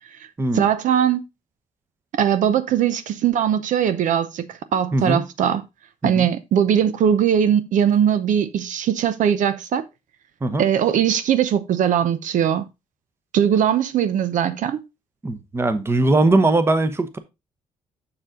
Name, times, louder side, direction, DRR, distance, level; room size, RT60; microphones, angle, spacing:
voice 1, 0.5-1.2 2.2-5.6 6.0-9.8 10.6-12.7 13.3-14.8, right 9 dB, 70° right, 0.7 m, -20 dB
voice 2, 4.9-5.2 6.0-6.3 10.4-10.7 15.2-17.2, right 2 dB, 20° right, 0.9 m, -20 dB
7.1 x 6.7 x 3.7 m
cardioid pair, 150°, 14 cm